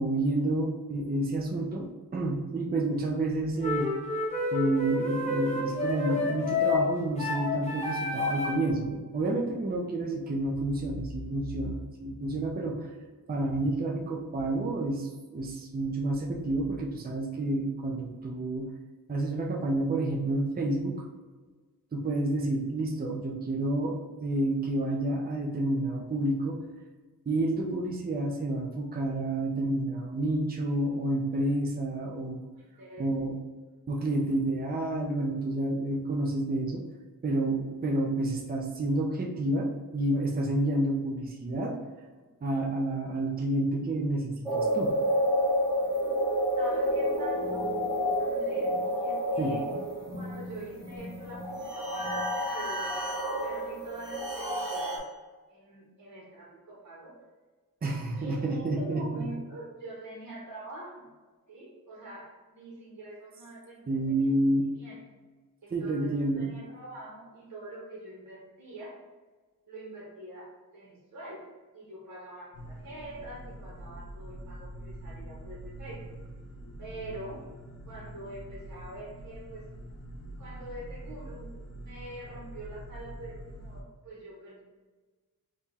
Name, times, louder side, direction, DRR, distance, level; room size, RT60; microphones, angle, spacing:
voice 1, 0.0-3.9 4.5-12.9 13.3-18.7 19.1-21.0 21.9-26.6 27.3-32.5 33.0-33.4 33.9-36.8 37.2-41.8 42.4-44.9 49.4-49.5 57.8-59.2 63.9-64.6 65.7-66.5, right 1 dB, 25° right, -1 dB, 0.6 m, -29 dB
sound 1, 3.6-8.7, left 3 dB, 20° left, 0.9 m, -29 dB
voice 2, 32.6-33.1 46.5-47.6 48.2-49.7 50.1-52.1 52.4-53.0 53.4-55.1 55.5-57.2 58.1-61.1 61.5-64.1 64.6-65.0 65.6-69.0 69.7-71.5 71.7-76.1 76.8-77.4 77.9-79.6 80.4-81.5 81.8-84.6, right 1 dB, 55° right, -3 dB, 1.1 m, -44 dB
sound 2, 44.5-55.0, equal, 10° right, 1.5 m, -29 dB
sound 3, 72.5-83.8, right 1 dB, 50° left, 0.8 m, -44 dB
3.4 x 2.4 x 4.1 m, 1.3 s
wide cardioid pair, 90°, 34 cm